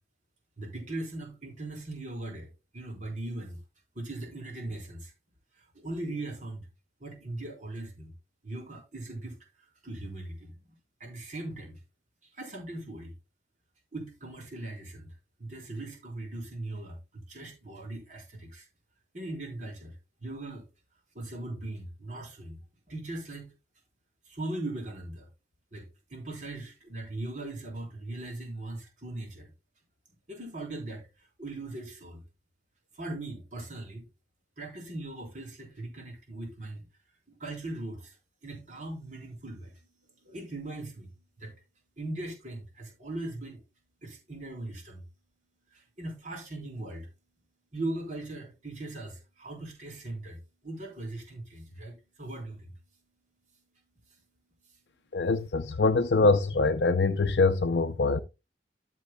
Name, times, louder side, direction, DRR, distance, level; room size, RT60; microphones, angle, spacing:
voice 1, 0.6-3.6 3.9-5.1 5.5-6.7 7.0-8.1 8.4-10.6 11.0-11.8 12.2-13.1 13.9-15.1 15.4-18.7 19.1-20.7 21.1-22.6 22.9-23.5 24.2-25.3 25.7-29.5 30.3-32.2 32.9-34.1 34.6-36.8 37.3-41.6 42.0-43.6 44.0-45.1 45.7-47.1 47.7-52.8 54.0-54.2 54.6-54.8 55.3-55.4, right 2 dB, 45° right, 4.0 m, -39 dB
voice 2, 55.1-58.2, left 3 dB, 70° left, 0.5 m, -24 dB
13.5 x 7.5 x 2.3 m
head